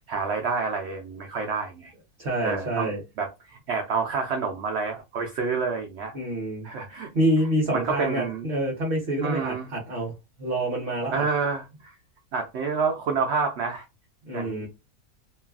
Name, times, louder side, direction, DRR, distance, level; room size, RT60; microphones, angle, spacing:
voice 1, 0.1-1.9 2.4-2.9 3.2-6.1 6.6-7.1 7.7-8.5 9.2-9.7 11.1-11.9 12.3-13.8 14.3-14.7, right 5 dB, 80° right, 0.6 m, -28 dB
voice 2, 2.2-3.0 6.1-6.7 7.1-10.1 10.4-11.2 14.2-14.7, right 1 dB, 45° right, 0.8 m, -27 dB
3.1 x 2.3 x 2.3 m
omnidirectional pair, 1.7 m